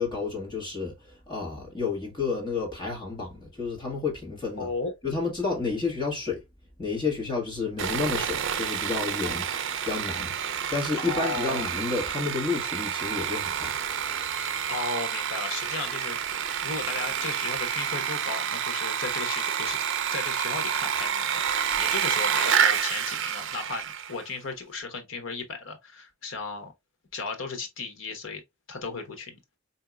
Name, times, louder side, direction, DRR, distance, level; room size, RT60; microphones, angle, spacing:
voice 1, 0.0-4.7 5.0-6.4 6.8-9.5 9.8-10.3 10.7-13.8, left 4 dB, 25° left, 1.5 m, -30 dB
voice 2, 4.6-4.9 11.0-11.7 14.7-19.8 20.1-21.4 21.8-26.7 27.1-28.4 28.7-29.4, left 3 dB, 70° left, 1.1 m, -35 dB
Sawing, 7.8-24.2, right 8 dB, 65° right, 0.5 m, -29 dB
4.7 x 2.7 x 2.3 m
head